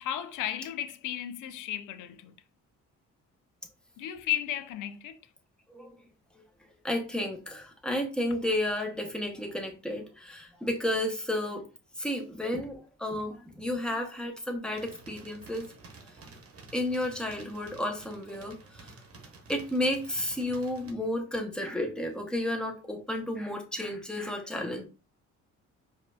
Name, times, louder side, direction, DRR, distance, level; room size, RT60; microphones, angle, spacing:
voice 1, 0.0-2.4 4.0-5.2, left 12 dB, 90° left, 0.5 m, -34 dB
voice 2, 6.8-11.7 12.0-15.6 16.7-18.9 19.5-24.9, left 1 dB, 5° left, 1.0 m, -32 dB
sound 1, 14.7-20.9, right 3 dB, 50° right, 1.0 m, -51 dB
4.9 x 2.6 x 2.3 m
cardioid pair, 90°, 30 cm